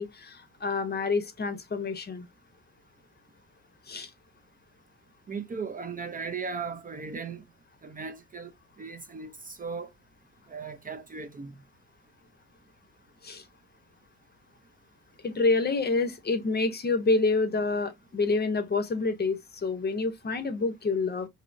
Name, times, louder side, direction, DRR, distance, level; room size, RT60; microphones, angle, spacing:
voice 1, 0.0-2.3 3.9-4.1 13.2-13.4 15.2-21.3, left 3 dB, 35° left, 0.7 m, -28 dB
voice 2, 5.3-7.4 7.8-8.5 8.8-9.9 10.5-11.6, right 5 dB, 30° right, 0.5 m, -37 dB
4.0 x 2.7 x 2.5 m
cardioid pair, 90°, 30 cm